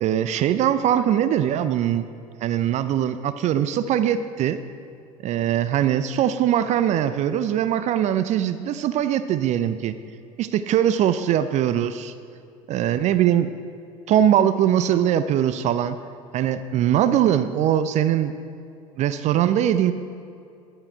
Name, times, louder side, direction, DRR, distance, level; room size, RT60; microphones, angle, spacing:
voice 1, 0.0-2.1 2.4-4.6 5.2-9.9 10.4-12.1 12.7-13.5 14.1-16.0 16.3-18.3 19.0-19.9, right 10 dB, 40° right, 12 dB, 0.5 m, -21 dB
11.0 x 8.8 x 4.5 m, 2.5 s
figure-of-eight pair, 70°, 18 cm